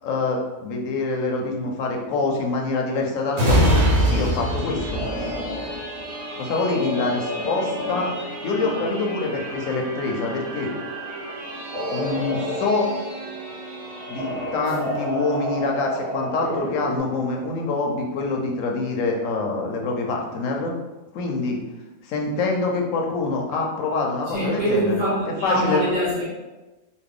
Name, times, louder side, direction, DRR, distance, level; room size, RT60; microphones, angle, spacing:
voice 1, 0.0-5.0 6.3-8.1 8.4-10.7 11.9-12.9 14.1-20.7 21.1-21.6 22.0-25.0 25.4-25.9, left 3 dB, 75° left, 0 dB, 1.0 m, -25 dB
sound 1, 3.3-16.7 17.1-17.2, equal, 85° right, 1.2 m, -28 dB
sound 2, 4.7-17.0, equal, 20° right, 1.2 m, -32 dB
voice 2, 24.3-26.2, right 1 dB, 65° right, -8 dB, 1.4 m, -23 dB
3.1 x 2.2 x 3.6 m, 1.1 s
omnidirectional pair, 1.5 m